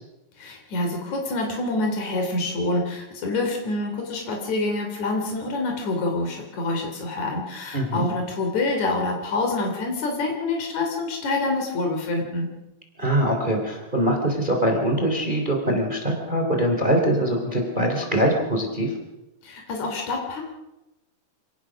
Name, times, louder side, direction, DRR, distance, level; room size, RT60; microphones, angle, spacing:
voice 1, 0.4-12.5 19.4-20.4, left 2 dB, 70° left, 2 dB, 4.4 m, -26 dB
voice 2, 7.7-8.1 13.0-18.9, right 1 dB, 15° right, 2 dB, 3.2 m, -23 dB
27.5 x 18.0 x 6.3 m, 0.98 s
omnidirectional pair, 3.4 m